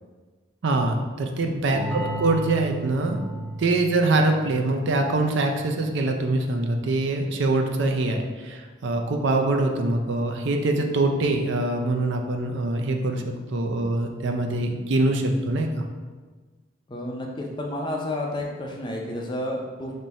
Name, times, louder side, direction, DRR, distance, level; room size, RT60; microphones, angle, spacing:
voice 1, 0.6-3.2 3.6-15.8, right 2 dB, 65° right, 3 dB, 0.4 m, -24 dB
voice 2, 1.5-2.2 16.9-19.9, left 1 dB, 25° left, 0 dB, 0.4 m, -31 dB
sound 1, 1.7-7.2, right 3 dB, ahead, 0.8 m, -36 dB
3.4 x 2.6 x 4.1 m, 1.4 s
head